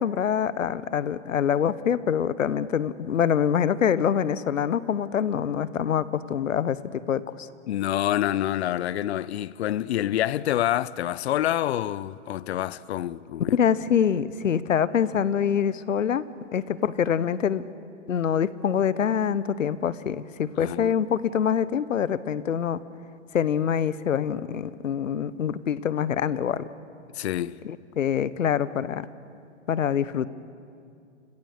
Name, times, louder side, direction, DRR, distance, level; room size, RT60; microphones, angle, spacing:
voice 1, 0.0-7.5 13.5-16.3 16.5-17.6 18.1-22.8 23.3-26.7 27.6-29.1 29.7-30.3, left 8 dB, 85° left, 1.1 m, -25 dB
voice 2, 7.7-13.6 20.6-20.9 27.1-27.6, left 12 dB, 55° left, 0.8 m, -27 dB
29.5 x 26.0 x 6.7 m
hypercardioid pair, 135°, 38 cm